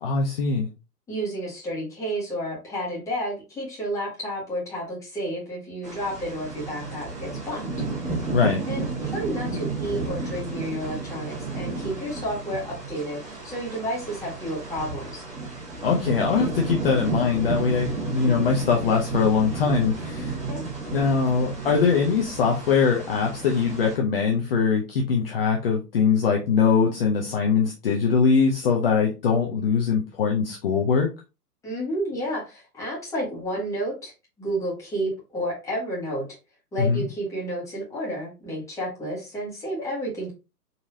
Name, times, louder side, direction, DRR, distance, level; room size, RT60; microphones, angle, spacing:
voice 1, 0.0-0.7 8.3-8.7 15.8-20.4 20.9-31.1 36.8-37.0, left 5 dB, 35° left, 0 dB, 0.6 m, -22 dB
voice 2, 1.1-7.8 8.7-15.3 20.5-20.7 31.6-36.2 36.7-40.3, right 1 dB, 5° left, -5 dB, 1.3 m, -31 dB
sound 1, 5.8-24.0, right 3 dB, 15° right, 1.5 m, -32 dB
4.0 x 2.9 x 2.7 m, 0.29 s
hypercardioid pair, 140°, 49 cm